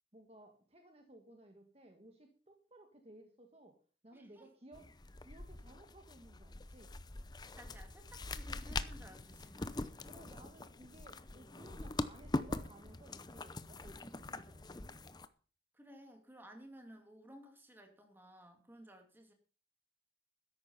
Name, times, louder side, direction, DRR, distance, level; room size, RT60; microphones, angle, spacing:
voice 1, 0.1-3.8 4.0-4.9 5.2-7.0 10.1-15.0, right 1 dB, 35° right, 4 dB, 1.6 m, -59 dB
voice 2, 4.1-4.5 7.4-10.0 15.7-19.3, equal, 10° right, 4 dB, 2.6 m, -57 dB
sound 1, 4.7-15.3, left 2 dB, 20° left, 0.7 m, -43 dB
13.0 x 10.5 x 5.6 m, 0.40 s
head